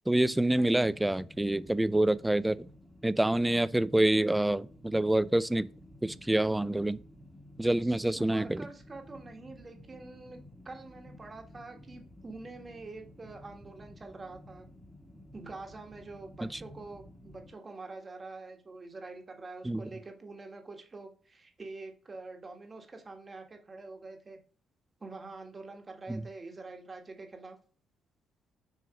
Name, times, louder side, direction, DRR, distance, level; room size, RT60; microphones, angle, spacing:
voice 1, 0.1-2.7 3.0-5.7 6.0-7.0 7.6-8.6 19.6-19.8 26.1-26.2, right 1 dB, 10° right, 0.3 m, -27 dB
voice 2, 0.6-0.9 7.8-14.7 15.3-24.4 25.0-27.6, right 3 dB, 30° right, 1.6 m, -46 dB
sound 1, 0.8-17.5, left 1 dB, 5° left, 1.6 m, -53 dB
6.7 x 3.1 x 4.9 m
supercardioid pair, 75°, 0 cm